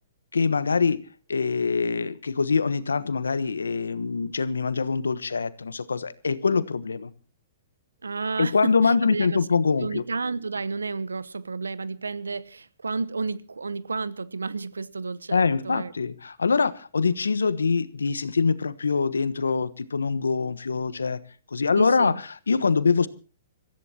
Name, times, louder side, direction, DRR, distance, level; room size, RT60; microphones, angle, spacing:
voice 1, 0.3-1.0 1.3-7.1 8.4-10.0 15.3-21.2 21.5-22.1 22.5-23.1, left 5 dB, 85° left, 1.1 m, -24 dB
voice 2, 8.0-9.4 9.8-15.9 21.7-22.2, right 4 dB, 85° right, 0.8 m, -31 dB
26.0 x 14.5 x 2.9 m
hypercardioid pair, 120°, 0 cm